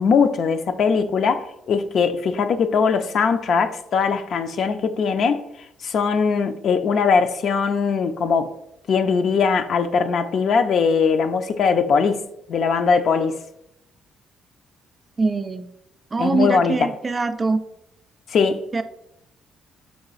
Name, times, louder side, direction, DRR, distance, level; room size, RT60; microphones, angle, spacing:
voice 1, 0.0-5.4 5.8-8.5 8.9-13.4 16.2-16.8 18.3-18.6, left 5 dB, 65° left, 0.4 m, -20 dB
voice 2, 15.2-15.7 16.1-17.6 18.7-18.8, right 3 dB, 30° right, 0.3 m, -22 dB
4.7 x 2.4 x 3.9 m
cardioid pair, 90°, 0 cm